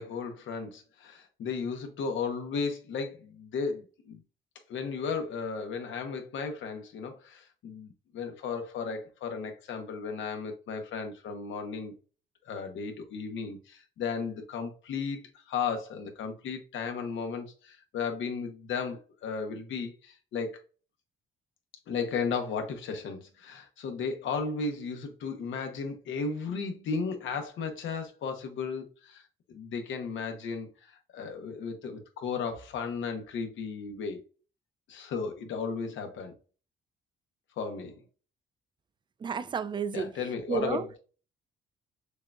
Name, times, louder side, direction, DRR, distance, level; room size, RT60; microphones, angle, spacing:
voice 1, 0.0-4.2 4.7-11.9 12.5-20.5 21.9-29.2 29.5-34.2 34.9-36.3 37.6-38.0 39.9-41.0, left 5 dB, 75° left, 0.9 m, -35 dB
voice 2, 39.2-40.1 40.5-40.8, right 6 dB, 25° right, 0.4 m, -31 dB
6.4 x 2.4 x 2.3 m
cardioid pair, 90°, 20 cm